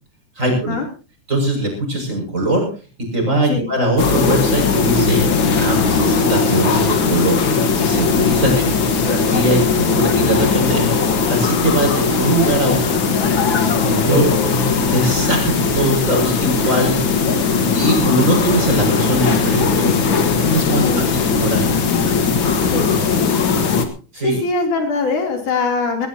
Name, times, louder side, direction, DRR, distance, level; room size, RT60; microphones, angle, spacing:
voice 1, 0.4-0.8 1.3-2.7 3.1-5.2 5.6-8.7 9.1-10.9 11.3-13.0 13.6-14.2 14.9-17.0 17.7-19.9 20.5-21.7 24.1-24.4, right 1 dB, 20° right, 2 dB, 7.0 m, -20 dB
sound 1, 4.0-23.9, left 5 dB, 45° left, 2.0 m, -18 dB
voice 2, 8.5-9.1 14.1-14.6 20.6-21.1 22.7-22.9 24.2-26.1, left 3 dB, 70° left, 3 dB, 4.9 m, -22 dB
19.5 x 18.0 x 2.9 m, 0.34 s
omnidirectional pair, 3.6 m